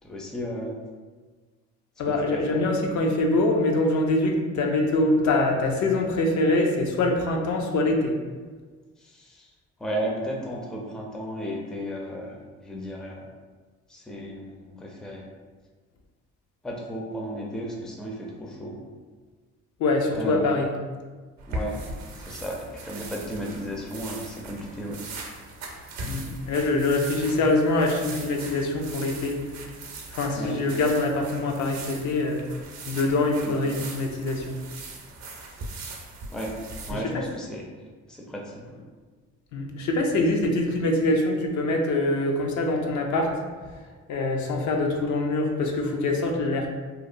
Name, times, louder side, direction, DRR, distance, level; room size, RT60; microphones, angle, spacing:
voice 1, 0.0-0.8 2.1-2.6 9.0-9.5 9.8-13.3 13.9-15.3 16.6-18.8 20.1-20.5 21.5-21.8 22.1-25.0 30.3-30.7 33.4-33.6 36.3-36.5 36.9-37.6 38.1-38.8, equal, ahead, -1 dB, 0.4 m, -34 dB
voice 2, 2.0-8.1 19.8-20.7 26.1-29.4 30.1-32.4 32.9-34.5 36.9-37.3 39.5-43.3 44.1-46.7, left 2 dB, 70° left, 2 dB, 0.5 m, -24 dB
sound 1, 21.4-36.9, right 2 dB, 60° right, 0.5 m, -39 dB
2.8 x 2.1 x 2.5 m, 1.4 s
cardioid pair, 90°, 30 cm